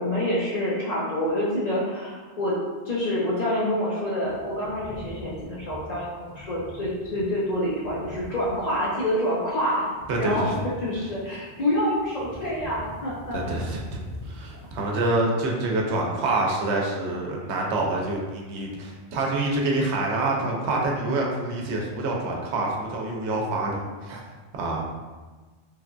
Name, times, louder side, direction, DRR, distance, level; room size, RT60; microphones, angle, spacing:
voice 1, 0.0-2.6 2.8-9.9 10.2-10.5 10.8-13.4, left 1 dB, 50° left, -6 dB, 0.5 m, -27 dB
sound 1, 4.2-15.0, left 1 dB, 25° right, 0.7 m, -44 dB
voice 2, 10.1-10.5 13.3-24.2 24.6-24.8, right 2 dB, 80° right, -1 dB, 0.9 m, -26 dB
3.1 x 2.4 x 2.2 m, 1.3 s
omnidirectional pair, 1.1 m